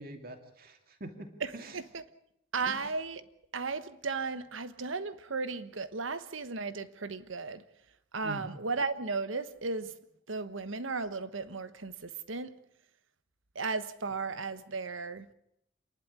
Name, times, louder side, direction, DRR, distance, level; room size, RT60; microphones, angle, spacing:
voice 1, 0.0-1.7 2.7-2.8 8.2-8.5, right 1 dB, 45° right, 2.5 m, -44 dB
voice 2, 1.4-2.0 2.5-3.2 3.5-7.6 8.1-9.9 10.3-12.5 13.5-15.3, right 4 dB, 80° right, 1.3 m, -35 dB
28.0 x 11.5 x 9.7 m
head